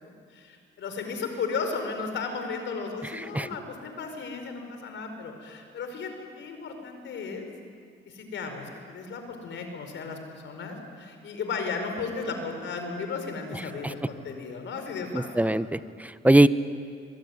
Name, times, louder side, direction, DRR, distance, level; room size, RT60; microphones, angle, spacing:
voice 1, 0.0-6.1 6.4-7.5 8.1-15.4, left 4 dB, 70° left, 6 dB, 5.1 m, -35 dB
voice 2, 15.1-16.5, right 1 dB, 5° right, 14 dB, 0.9 m, -21 dB
25.0 x 22.5 x 9.6 m, 2.3 s
cardioid pair, 90°, 20 cm